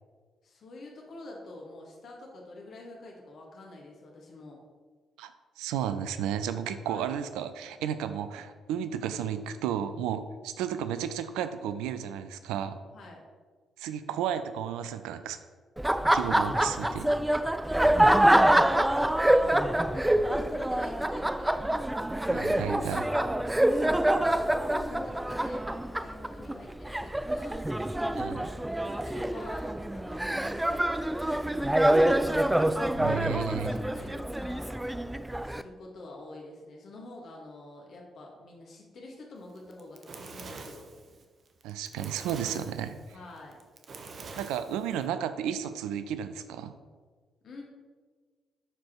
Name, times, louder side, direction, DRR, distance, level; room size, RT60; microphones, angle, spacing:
voice 1, 0.4-4.6 6.8-7.1 12.9-13.2 16.3-17.3 17.8-21.7 23.1-27.7 28.8-32.7 33.0-33.3 33.6-34.8 35.4-40.9 43.1-43.6 47.4-47.6, left 2 dB, 55° left, -1 dB, 2.1 m, -47 dB
voice 2, 5.6-12.8 13.8-15.4 16.1-17.1 22.3-23.1 28.1-28.5 33.0-33.8 41.6-43.0 44.4-46.7, right 9 dB, 70° right, 11 dB, 0.4 m, -33 dB
Laughter, 15.8-35.6, right 1 dB, 10° right, 0.4 m, -26 dB
Fire, 39.6-45.1, right 4 dB, 50° right, 0.9 m, -45 dB
11.0 x 4.7 x 4.6 m, 1.5 s
figure-of-eight pair, 40°, 0 cm